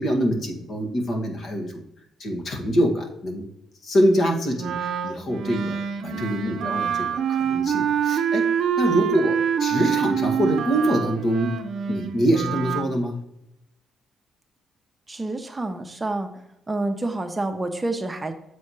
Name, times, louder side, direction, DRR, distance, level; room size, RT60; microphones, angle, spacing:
voice 1, 0.0-1.8 2.2-3.4 3.8-8.5 8.8-11.6 11.9-13.2, equal, 55° left, 2 dB, 1.8 m, -24 dB
Wind instrument woodwind instrument, 4.6-12.9, right 8 dB, 65° right, 0.6 m, -26 dB
voice 2, 15.1-16.3 16.7-18.3, right 2 dB, 20° right, 6 dB, 0.8 m, -28 dB
7.6 x 4.2 x 4.8 m, 0.83 s
cardioid pair, 90°, 0 cm